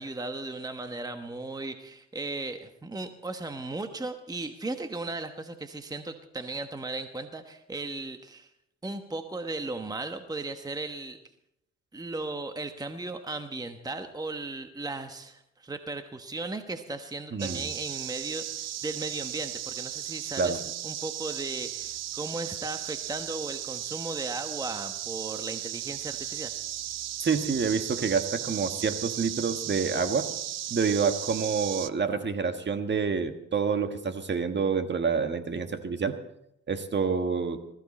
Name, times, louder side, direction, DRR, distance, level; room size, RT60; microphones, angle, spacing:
voice 1, 0.0-8.5 8.8-11.2 11.9-26.5, right 2 dB, 10° right, 7 dB, 1.1 m, -36 dB
voice 2, 17.3-17.7 20.4-20.6 27.2-30.3 30.7-36.2 36.7-37.6, right 5 dB, 35° right, 8 dB, 1.5 m, -28 dB
sound 1, 17.4-31.9, right 12 dB, 60° right, 0.6 m, -36 dB
20.5 x 14.5 x 4.2 m, 0.81 s
cardioid pair, 90°, 30 cm